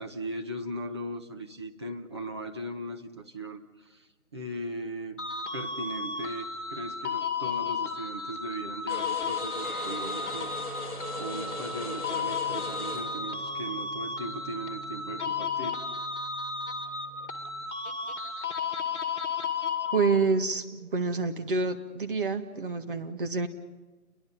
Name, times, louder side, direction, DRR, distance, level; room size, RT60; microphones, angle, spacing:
voice 1, 0.0-5.2 5.5-10.9 11.2-15.8, right 1 dB, 20° right, 3 dB, 1.0 m, -38 dB
sound 1, 5.2-20.4, left 5 dB, 55° left, 2.3 m, -34 dB
sound 2, 8.9-14.1, left 3 dB, 10° left, 4.9 m, -39 dB
Guitar, 9.6-17.7, right 5 dB, 75° right, 5.0 m, -47 dB
voice 2, 19.9-23.5, right 4 dB, 35° right, 5 dB, 1.7 m, -28 dB
30.0 x 22.5 x 5.5 m, 1.2 s
figure-of-eight pair, 160°, 43 cm